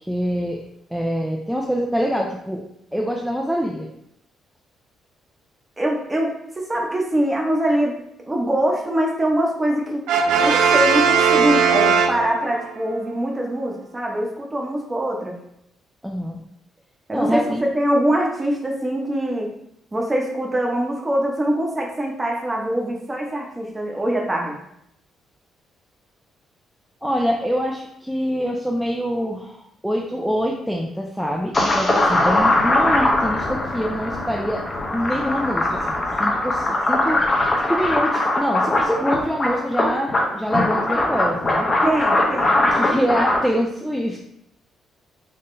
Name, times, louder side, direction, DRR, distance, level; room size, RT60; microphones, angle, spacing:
voice 1, 0.1-0.6 0.9-2.6 2.9-3.9 16.0-16.4 17.1-17.7 27.0-34.6 34.9-37.2 37.6-41.7 42.7-44.2, equal, ahead, -1 dB, 0.4 m, -25 dB
voice 2, 5.8-7.9 8.2-10.1 10.4-15.4 17.1-19.5 19.9-24.6 41.8-42.6, right 1 dB, 20° right, 0 dB, 0.8 m, -23 dB
Brass instrument, 10.1-12.7, right 6 dB, 90° right, 0.3 m, -18 dB
sound 1, 31.5-43.4, left 2 dB, 30° left, 0.7 m, -21 dB
3.7 x 2.1 x 3.7 m, 0.75 s
cardioid pair, 90°, 0 cm